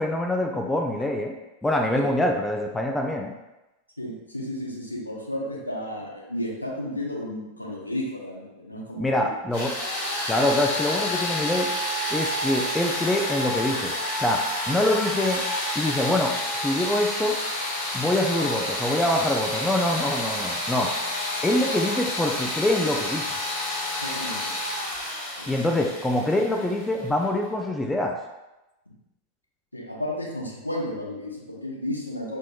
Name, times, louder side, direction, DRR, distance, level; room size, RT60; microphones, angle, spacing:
voice 1, 0.0-1.3 1.6-3.4 9.0-9.7 10.3-11.7 12.1-15.4 15.8-17.4 17.9-20.9 21.4-23.3 25.5-28.2, left 1 dB, 5° left, 1 dB, 0.4 m, -25 dB
voice 2, 4.0-9.3 24.0-24.5 25.4-25.5 29.7-32.4, left 1 dB, 85° left, -3 dB, 0.8 m, -33 dB
sound 1, 9.5-27.2, left 1 dB, 50° left, 1.2 m, -29 dB
4.4 x 3.0 x 2.3 m, 1.0 s
figure-of-eight pair, 90°, 0 cm